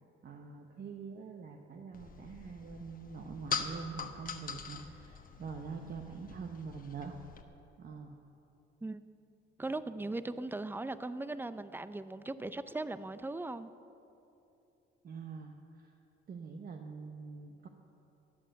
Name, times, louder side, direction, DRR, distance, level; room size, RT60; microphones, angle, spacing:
voice 1, 0.2-7.1 7.8-8.2 15.0-15.9 16.3-17.7, right 5 dB, 50° right, 3 dB, 0.9 m, -45 dB
sound 1, 1.9-7.4, left 6 dB, 45° left, 1.1 m, -42 dB
voice 2, 9.6-13.7, right 2 dB, 10° right, 13 dB, 0.5 m, -39 dB
13.5 x 9.0 x 7.7 m, 2.9 s
cardioid pair, 90°, 20 cm